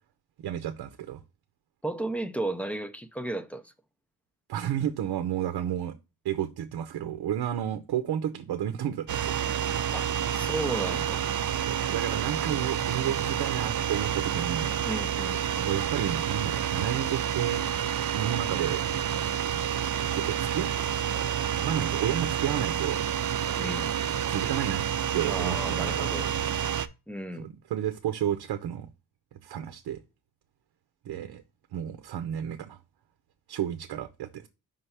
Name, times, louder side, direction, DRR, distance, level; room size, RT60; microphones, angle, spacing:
voice 1, 0.4-1.2 4.5-5.9 6.2-9.7 11.7-14.7 15.6-17.7 18.1-18.8 20.1-20.7 21.6-23.0 24.3-24.8 25.1-26.4 27.4-28.9 29.4-30.0 31.0-31.4 31.7-32.8 33.5-34.5, right 10 dB, 80° right, 0.7 m, -31 dB
voice 2, 1.8-3.7 9.9-11.2 14.8-15.7 23.6-24.0 25.3-26.3 27.1-27.5, right 2 dB, 5° left, 0.4 m, -34 dB
sound 1, 9.1-26.9, right 9 dB, 50° right, 0.5 m, -29 dB
5.4 x 3.3 x 5.5 m
wide cardioid pair, 165°, 38 cm